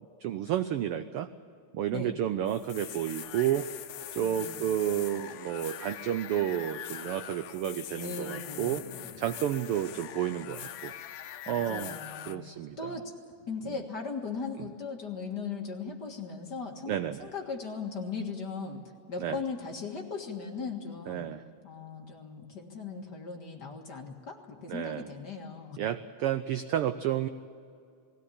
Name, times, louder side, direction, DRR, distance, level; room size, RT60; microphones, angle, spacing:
voice 1, 0.2-1.3 1.7-3.7 4.1-8.8 9.2-10.9 11.5-11.9 12.3-12.8 16.9-17.3 19.2-19.4 21.1-21.4 24.7-25.1 25.8-27.3, right 11 dB, 85° right, 11 dB, 1.2 m, -31 dB
sound 1, 2.5-12.3, left 11 dB, 90° left, 2.2 m, -43 dB
voice 2, 4.2-4.7 7.9-9.3 11.5-12.5 12.8-13.1 13.5-18.8 19.1-21.3 21.6-25.8, left 4 dB, 40° left, 2 dB, 2.0 m, -38 dB
20.0 x 17.0 x 10.0 m, 2.4 s
omnidirectional pair, 3.3 m